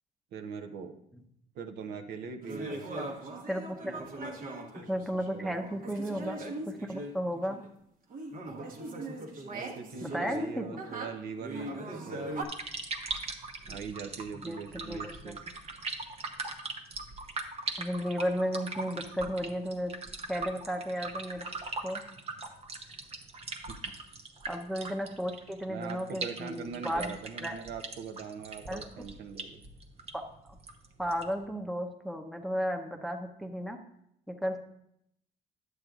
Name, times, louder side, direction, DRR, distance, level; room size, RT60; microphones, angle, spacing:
voice 1, 0.3-1.0 1.5-2.9 5.3-5.5 9.5-12.3 13.7-15.4 23.7-23.8 25.7-29.6, right 6 dB, 70° right, 4 dB, 0.8 m, -41 dB
sound 1, 2.4-7.7 8.1-12.4, right 2 dB, 55° right, 1.2 m, -40 dB
voice 2, 3.5-4.0 4.7-6.4 6.7-7.6 10.0-10.8 14.4-15.3 17.8-19.9 20.3-21.5 21.8-22.0 24.5-27.5 28.7-28.9 30.1-30.2 31.0-33.8 34.3-34.6, equal, ahead, 4 dB, 0.7 m, -34 dB
sound 2, 12.4-31.4, right 3 dB, 35° right, 0.9 m, -41 dB
10.0 x 7.9 x 2.4 m, 0.75 s
cardioid pair, 110°, 17 cm